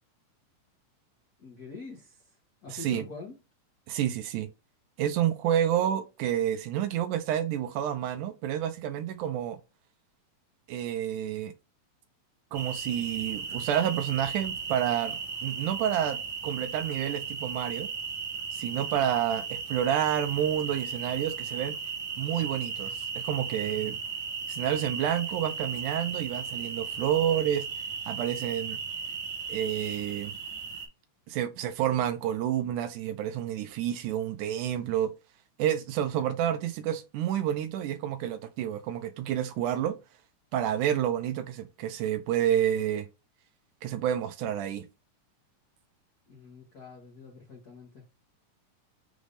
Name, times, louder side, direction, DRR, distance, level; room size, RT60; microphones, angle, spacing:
voice 1, 1.4-2.3 2.6-3.3 46.3-48.1, left 3 dB, 65° left, 0.9 m, -45 dB
voice 2, 2.7-3.0 3.9-4.5 5.0-9.6 10.7-11.5 12.5-16.2 16.4-17.9 18.5-21.8 22.2-24.0 24.5-27.7 28.1-28.8 29.5-30.4 31.3-35.1 35.6-40.0 40.5-43.1 43.8-44.9, right 10 dB, 80° right, 2.0 m, -29 dB
sound 1, 12.5-30.9, right 5 dB, 60° right, 1.2 m, -36 dB
6.2 x 3.3 x 2.6 m
omnidirectional pair, 3.7 m